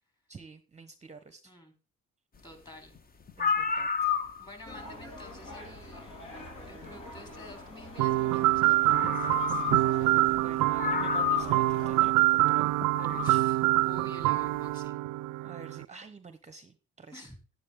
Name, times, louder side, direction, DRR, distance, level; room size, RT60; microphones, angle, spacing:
voice 1, 0.3-1.5 3.4-4.2 10.3-13.4 15.4-17.3, right 4 dB, 25° right, 11 dB, 0.8 m, -48 dB
voice 2, 2.4-2.9 3.8-3.9 4.4-6.1 6.7-9.6 10.0-10.2 13.1-15.0 17.1-17.4, equal, 15° left, 4 dB, 3.3 m, -50 dB
sound 1, 3.0-3.1 3.3-4.7 6.1-6.2 8.4-8.5 8.9-10.1 10.4-10.5 10.8-11.8 12.8-13.4, left 6 dB, 30° left, 0.8 m, -30 dB
sound 2, 4.6-12.1, left 2 dB, 70° left, 3.7 m, -46 dB
sound 3, 8.0-15.9, right 18 dB, 85° right, 0.5 m, -26 dB
10.0 x 9.9 x 3.6 m, 0.33 s
cardioid pair, 90°, 30 cm